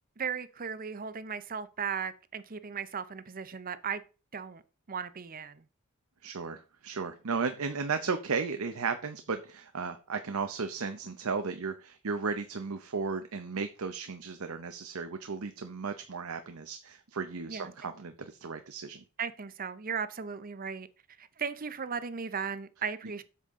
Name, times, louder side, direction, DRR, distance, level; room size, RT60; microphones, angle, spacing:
voice 1, 0.2-4.0 4.3-4.6 4.9-5.6 17.5-17.7 19.2-20.9 21.2-23.2, right 6 dB, 40° right, 0.7 m, -36 dB
voice 2, 6.2-19.0, right 5 dB, 75° right, 0.8 m, -35 dB
8.3 x 7.3 x 3.7 m
head